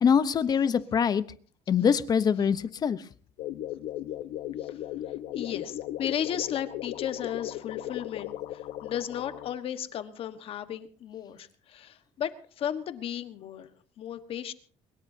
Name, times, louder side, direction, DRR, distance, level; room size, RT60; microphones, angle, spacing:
voice 1, 0.0-1.2 1.7-3.0, left 7 dB, 35° left, 14 dB, 0.9 m, -24 dB
sound 1, 3.4-9.6, left 13 dB, 85° left, 1.1 m, -37 dB
voice 2, 4.6-14.5, left 10 dB, 50° left, 10 dB, 1.4 m, -35 dB
23.0 x 21.0 x 2.8 m, 0.43 s
cardioid pair, 145°, 12 cm